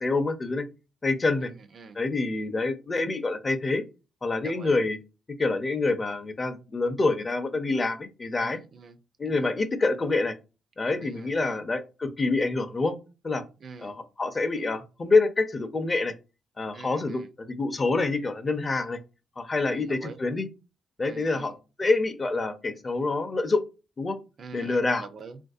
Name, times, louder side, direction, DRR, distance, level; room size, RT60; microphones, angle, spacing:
voice 1, 0.0-0.6 1.0-1.5 1.9-3.8 4.2-5.0 5.4-8.6 9.2-10.3 10.8-13.0 13.2-13.4 13.8-16.1 16.6-19.0 19.4-20.5 21.0-21.5 21.8-23.6 24.0-24.2 24.5-25.1, left 3 dB, 30° left, 0.5 m, -26 dB
voice 2, 1.4-2.0 4.4-4.8 8.4-9.0 9.3-9.5 11.0-11.6 13.6-14.0 16.7-17.3 19.6-20.2 21.0-21.5 24.4-25.4, right 5 dB, 50° right, 0.4 m, -45 dB
3.2 x 2.5 x 2.3 m
cardioid pair, 90°, 0 cm